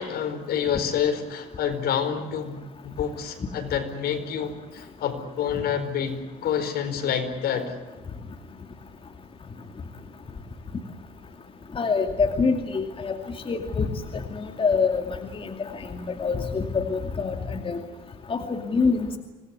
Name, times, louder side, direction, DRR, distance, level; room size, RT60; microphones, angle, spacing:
voice 1, 0.0-2.5 2.8-7.7, left 8 dB, 65° left, 8 dB, 4.6 m, -28 dB
voice 2, 11.7-13.2 13.5-13.9 14.1-17.8 18.3-19.2, left 4 dB, 30° left, 5 dB, 2.5 m, -26 dB
26.0 x 19.0 x 9.6 m, 1.2 s
cardioid pair, 110°, 17 cm